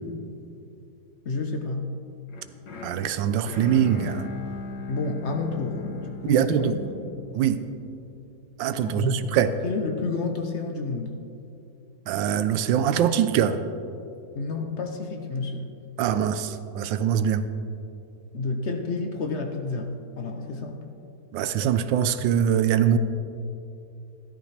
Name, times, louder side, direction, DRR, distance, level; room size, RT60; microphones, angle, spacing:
voice 1, 1.2-1.9 4.9-6.8 8.8-11.2 14.3-15.7 18.3-20.8, left 3 dB, 55° left, 4 dB, 0.8 m, -30 dB
sound 1, 2.3-8.4, left 3 dB, 75° left, 1.8 m, -39 dB
voice 2, 2.8-4.3 6.2-6.7 7.3-7.6 8.6-9.5 12.1-13.6 16.0-17.5 21.3-23.0, right 9 dB, 85° right, 12 dB, 1.3 m, -23 dB
14.0 x 13.0 x 3.3 m, 2.7 s
omnidirectional pair, 2.0 m